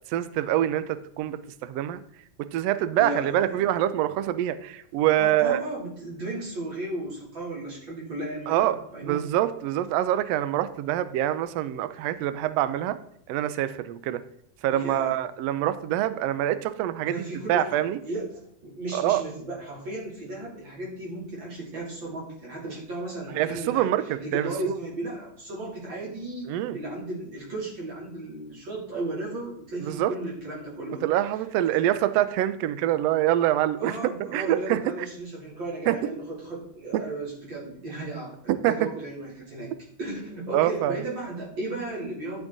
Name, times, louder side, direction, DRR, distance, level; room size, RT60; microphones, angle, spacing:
voice 1, 0.1-2.0 2.4-5.6 8.5-8.8 9.0-13.0 13.3-14.2 14.6-17.2 17.5-18.0 18.9-19.2 23.3-24.7 26.5-26.8 29.8-30.1 31.0-34.8 35.9-36.0 36.9-37.0 38.6-38.7 40.5-41.0, right 12 dB, 80° right, 13 dB, 1.5 m, -25 dB
voice 2, 2.9-3.6 5.2-9.2 14.7-15.2 17.1-18.3 18.6-23.9 24.2-31.0 33.8-39.7 40.0-42.4, right 2 dB, 40° right, -4 dB, 3.8 m, -35 dB
12.0 x 6.0 x 4.0 m, 0.68 s
omnidirectional pair, 3.4 m